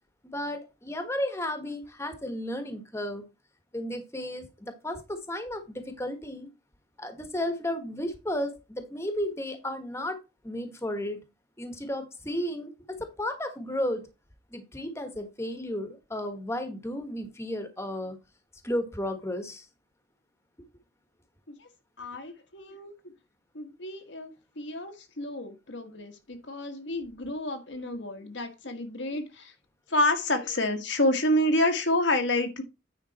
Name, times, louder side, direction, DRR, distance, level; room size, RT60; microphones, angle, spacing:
voice 1, 0.2-3.2 3.7-6.5 7.0-10.2 10.4-11.2 11.6-14.1 14.5-18.2 18.6-19.7, left 1 dB, 15° left, 1.4 m, -33 dB
voice 2, 22.0-22.9 23.5-29.5 29.9-32.6, left 1 dB, 75° left, 1.7 m, -29 dB
9.4 x 5.2 x 4.3 m
head